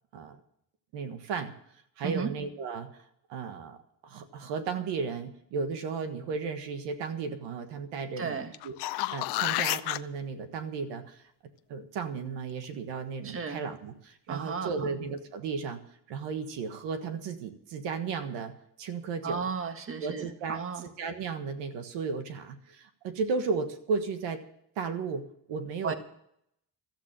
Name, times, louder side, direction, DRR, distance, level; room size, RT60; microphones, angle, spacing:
voice 1, 0.9-1.5 2.0-2.9 3.3-3.8 4.0-8.4 8.6-11.2 11.7-19.5 20.0-24.4 24.8-25.9, right 5 dB, 80° right, 8 dB, 1.6 m, -34 dB
voice 2, 8.2-8.5 13.2-13.6 14.3-14.9 19.2-20.8 25.8-25.9, right 6 dB, 30° right, 8 dB, 1.7 m, -34 dB
sound 1, 8.5-10.0 14.8-14.9, left 18 dB, 70° left, 0.7 m, -30 dB
13.5 x 8.2 x 9.0 m, 0.71 s
cardioid pair, 100°, 42 cm